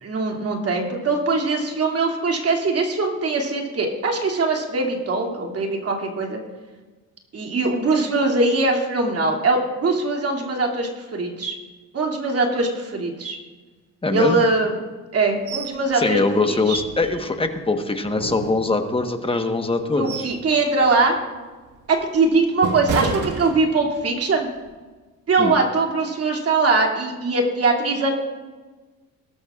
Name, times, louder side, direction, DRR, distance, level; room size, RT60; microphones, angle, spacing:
voice 1, 0.0-6.4 7.3-11.5 11.9-13.4 14.1-14.7 15.1-16.8 20.0-21.2 21.9-24.5 25.3-28.1, right 3 dB, 50° right, 1 dB, 2.7 m, -21 dB
voice 2, 14.0-14.4 15.9-20.3 25.4-25.5, left 3 dB, 20° left, 6 dB, 1.3 m, -22 dB
sound 1, 15.5-15.8 16.1-16.2 16.7-17.5 18.0-19.1 19.6-20.5 20.8-21.1 21.6-24.1 24.5-24.7, right 4 dB, 85° right, 1.8 m, -31 dB
18.5 x 13.5 x 2.5 m, 1.3 s
cardioid pair, 90°, 30 cm